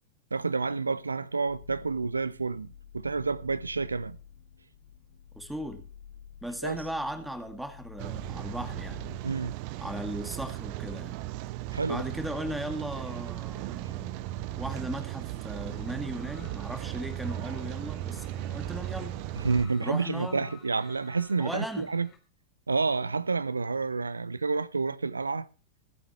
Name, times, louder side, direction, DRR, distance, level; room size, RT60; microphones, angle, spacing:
voice 1, 0.3-4.2 6.6-6.8 9.2-9.6 11.7-12.0 19.4-22.1 22.7-25.5, right 4 dB, 80° right, 0.6 m, -29 dB
sound 1, 1.5-9.2, left 8 dB, 55° left, 1.5 m, -49 dB
voice 2, 5.3-5.8 6.4-9.0 9.8-11.2 11.9-14.2 14.5-19.2 19.8-20.5 21.4-21.9, right 1 dB, 5° right, 2.2 m, -37 dB
Rain, 8.0-19.7, right 14 dB, 45° right, 0.7 m, -36 dB
sound 2, 15.7-22.2, left 6 dB, 30° left, 3.5 m, -56 dB
23.5 x 8.8 x 3.2 m
figure-of-eight pair, 90°, 0 cm